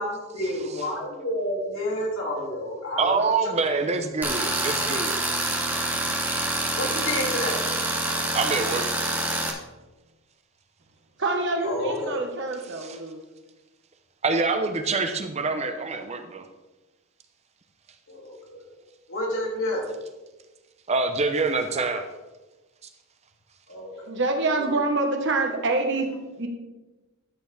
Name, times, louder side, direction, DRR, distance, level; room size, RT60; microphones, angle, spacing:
voice 1, 0.0-3.6 6.7-7.6 11.6-12.3 18.1-18.6 19.1-19.8 23.7-24.2, left 1 dB, 70° left, -2 dB, 2.8 m, -30 dB
voice 2, 3.0-5.2 8.1-8.9 12.8-13.0 14.2-16.5 20.9-22.1, right 4 dB, 30° right, 7 dB, 0.6 m, -26 dB
Tools, 4.2-9.5, right 2 dB, 10° right, 1.1 m, -26 dB
voice 3, 11.2-13.2 24.1-26.5, right 2 dB, 55° right, 4 dB, 1.3 m, -26 dB
12.5 x 7.0 x 3.4 m, 1.1 s
head